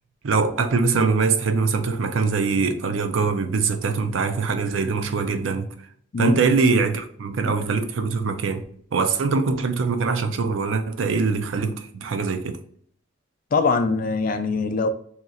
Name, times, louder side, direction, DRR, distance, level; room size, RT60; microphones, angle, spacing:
voice 1, 0.2-5.7 6.2-8.6 8.9-12.6, right 4 dB, 90° right, 0.5 m, -23 dB
voice 2, 13.5-14.9, left 4 dB, 45° left, 0.4 m, -22 dB
2.8 x 2.4 x 3.9 m
head